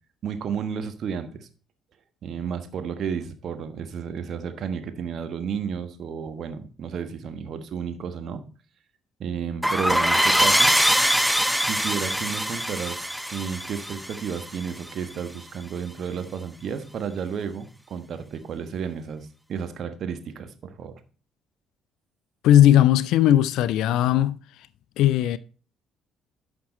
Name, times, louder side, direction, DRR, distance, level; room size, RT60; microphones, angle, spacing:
voice 1, 0.2-1.5 2.2-8.4 9.2-10.7 11.6-20.9, right 7 dB, 55° right, 1.3 m, -32 dB
sound 1, 9.6-14.9, equal, ahead, 0.6 m, -23 dB
voice 2, 22.4-24.4 25.0-25.4, left 12 dB, 70° left, 0.4 m, -18 dB
11.5 x 6.0 x 4.3 m
hypercardioid pair, 50°, 0 cm